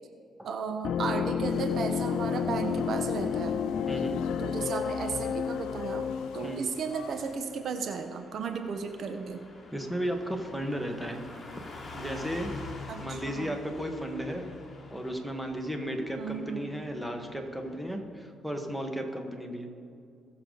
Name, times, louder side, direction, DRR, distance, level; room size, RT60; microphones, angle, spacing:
voice 1, 0.4-3.6 4.4-9.4 12.9-13.6 16.2-16.7, right 5 dB, 60° right, 7 dB, 0.9 m, -34 dB
sound 1, 0.8-6.6, left 7 dB, 70° left, 0.3 m, -30 dB
sound 2, 1.5-7.4, left 5 dB, 90° left, 0.9 m, -51 dB
voice 2, 3.9-4.3 6.4-6.7 9.7-11.2 11.9-12.6 13.0-14.5 14.9-19.7, equal, 5° right, 4 dB, 1.5 m, -34 dB
Car passing by / Truck, 5.4-18.0, left 3 dB, 30° left, 3.1 m, -47 dB
20.0 x 7.1 x 3.9 m, 2.5 s
cardioid pair, 90°, 0 cm